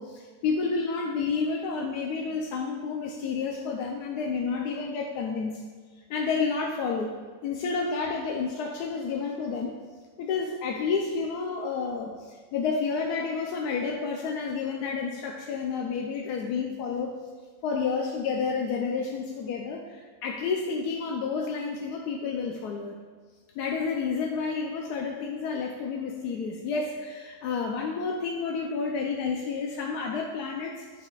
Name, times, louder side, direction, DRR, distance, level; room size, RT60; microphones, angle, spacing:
voice 1, 0.0-5.6 6.1-7.1 7.4-9.8 10.2-17.1 17.6-23.0 23.6-31.1, left 5 dB, 85° left, 1 dB, 1.2 m, -30 dB
12.0 x 4.8 x 2.3 m, 1.4 s
omnidirectional pair, 1.7 m